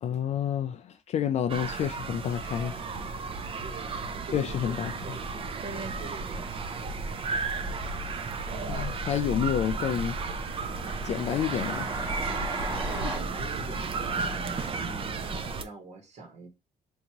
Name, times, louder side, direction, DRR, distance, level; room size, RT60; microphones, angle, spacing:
voice 1, 0.0-2.8 4.3-4.9 8.7-10.2 11.0-11.9, left 9 dB, 55° left, 0.4 m, -29 dB
sound 1, 1.5-15.6, right 4 dB, 40° right, 0.6 m, -33 dB
voice 2, 3.6-5.6 6.0-6.5 8.4-9.0 12.8-16.5, right 3 dB, 55° right, 1.3 m, -44 dB
Train, 9.0-13.2, right 1 dB, 25° right, 1.2 m, -39 dB
4.7 x 2.6 x 2.8 m
cardioid pair, 100°, 14 cm